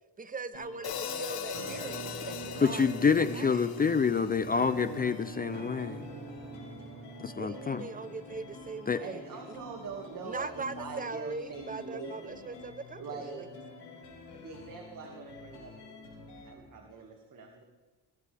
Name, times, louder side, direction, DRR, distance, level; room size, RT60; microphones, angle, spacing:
voice 1, 0.2-3.7 7.4-9.6 10.2-13.5, right 4 dB, 20° right, 13 dB, 0.8 m, -41 dB
sound 1, 0.5-16.5, left 4 dB, 85° left, 5.6 m, -50 dB
Hi-hat, 0.8-5.0, left 7 dB, 65° left, 1.6 m, -40 dB
Musical instrument, 1.5-11.3, right 4 dB, 85° right, 2.4 m, -44 dB
voice 2, 2.6-6.0 7.2-7.8 8.9-9.0, left 5 dB, 25° left, 13 dB, 0.4 m, -27 dB
voice 3, 9.0-10.5 10.8-12.6 13.0-13.4 14.3-15.9 16.2-17.6, right 5 dB, 50° right, 2 dB, 2.1 m, -43 dB
21.5 x 17.5 x 3.4 m, 1.4 s
cardioid pair, 135°, 40 cm